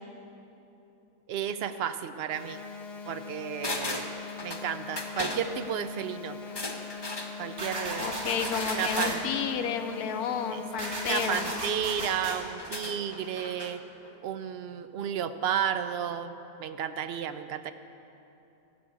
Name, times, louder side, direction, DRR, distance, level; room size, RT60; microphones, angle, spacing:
voice 1, 1.3-2.6 3.1-4.1 4.4-6.4 7.4-8.1 8.8-9.2 10.5-10.6 11.1-13.8 14.2-16.3 16.6-17.7, right 8 dB, 65° right, 11 dB, 0.6 m, -32 dB
sound 1, 2.3-11.3, left 6 dB, 50° left, 1.0 m, -42 dB
sound 2, 3.6-4.7 5.0-5.4 6.4-7.3 8.4-9.2 11.1-11.5 12.5-13.7 14.0-14.1, left 2 dB, 20° left, 0.8 m, -36 dB
sound 3, 7.6-9.2 10.8-12.4, right 1 dB, 50° right, 2.3 m, -34 dB
voice 2, 8.0-11.5, left 7 dB, 80° left, 7 dB, 1.2 m, -31 dB
13.5 x 6.9 x 9.2 m, 2.9 s
omnidirectional pair, 1.6 m